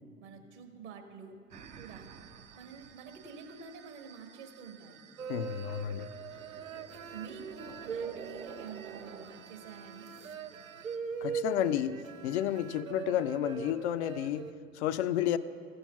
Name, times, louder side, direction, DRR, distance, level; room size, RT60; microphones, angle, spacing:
voice 1, 0.2-1.4 1.8-2.1 2.5-5.0 7.1-10.1, right 5 dB, 55° right, 5 dB, 1.4 m, -48 dB
sound 1, 1.5-11.0, right 7 dB, 20° right, 0.3 m, -51 dB
sound 2, 5.2-14.5, right 6 dB, 85° right, 0.5 m, -41 dB
voice 2, 5.3-6.1 11.2-15.4, left 11 dB, 55° left, 12 dB, 0.5 m, -31 dB
15.0 x 6.4 x 5.7 m, 2.2 s
figure-of-eight pair, 75°, 40 cm